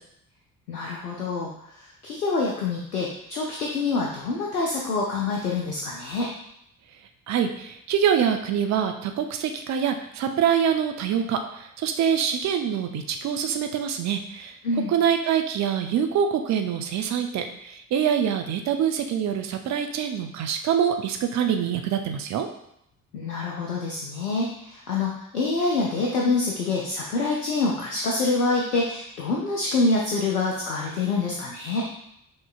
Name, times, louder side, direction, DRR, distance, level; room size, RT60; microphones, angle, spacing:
voice 1, 0.7-6.3 14.6-14.9 23.1-31.8, left 3 dB, 85° left, -2 dB, 0.6 m, -26 dB
voice 2, 7.3-14.6 14.9-22.5, right 8 dB, 40° right, 5 dB, 0.6 m, -25 dB
6.2 x 3.0 x 2.4 m, 0.77 s
figure-of-eight pair, 45°, 46 cm